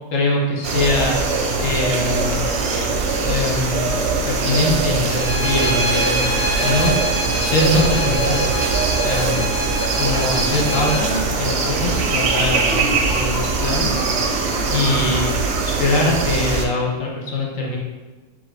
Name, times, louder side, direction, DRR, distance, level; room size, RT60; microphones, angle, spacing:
voice 1, 0.1-1.2 1.6-2.5 3.2-6.9 7.3-8.6 9.0-9.4 10.0-14.0 14.7-15.3 15.8-17.8, left 2 dB, 90° left, -2 dB, 1.2 m, -22 dB
sound 1, 0.6-16.7, right 4 dB, 65° right, 0.8 m, -21 dB
Bowed string instrument, 5.1-11.1, equal, 65° left, 0.9 m, -26 dB
3.6 x 3.4 x 3.2 m, 1.3 s
omnidirectional pair, 1.3 m